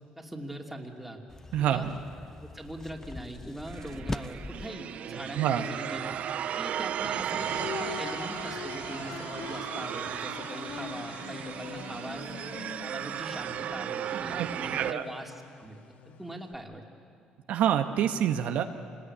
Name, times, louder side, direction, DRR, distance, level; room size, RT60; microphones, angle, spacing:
voice 1, 0.2-1.2 1.6-1.9 2.4-6.1 6.5-12.4 12.8-15.3 15.6-15.8 16.2-16.9, right 1 dB, 5° right, 2 dB, 2.9 m, -41 dB
sound 1, 1.3-4.7, left 2 dB, 15° left, 0.8 m, -41 dB
voice 2, 1.5-1.9 5.3-5.6 14.3-15.0 17.5-18.6, right 10 dB, 75° right, 6 dB, 1.3 m, -27 dB
sound 2, 3.7-14.9, right 10 dB, 60° right, 0.6 m, -35 dB
sound 3, 7.4-16.5, left 9 dB, 75° left, 1.2 m, -43 dB
26.0 x 20.0 x 9.9 m, 2.3 s
cardioid pair, 105°, 3 cm